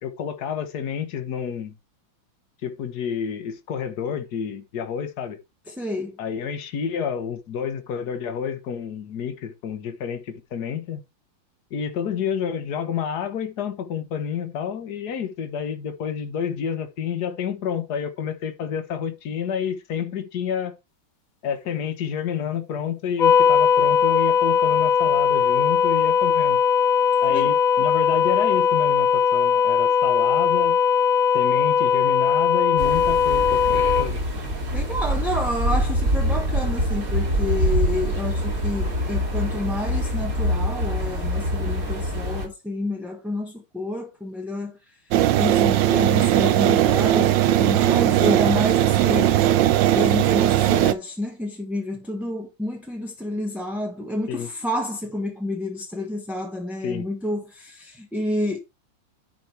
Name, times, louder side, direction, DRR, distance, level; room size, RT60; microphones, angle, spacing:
voice 1, 0.0-1.8 2.6-5.4 6.2-11.0 11.7-20.8 21.4-26.6 27.2-30.8 31.3-34.2 54.3-54.5 56.8-57.1, left 7 dB, 55° left, 1.7 m, -29 dB
voice 2, 5.7-6.2 27.3-27.5 34.7-45.0 45.4-49.4 49.7-58.6, left 1 dB, ahead, 1.1 m, -29 dB
sound 1, 23.2-34.1, left 7 dB, 85° left, 0.4 m, -19 dB
sound 2, 32.8-42.5, equal, 45° right, 2.7 m, -25 dB
sound 3, 45.1-50.9, right 12 dB, 75° right, 1.3 m, -18 dB
10.5 x 5.0 x 4.5 m
omnidirectional pair, 2.2 m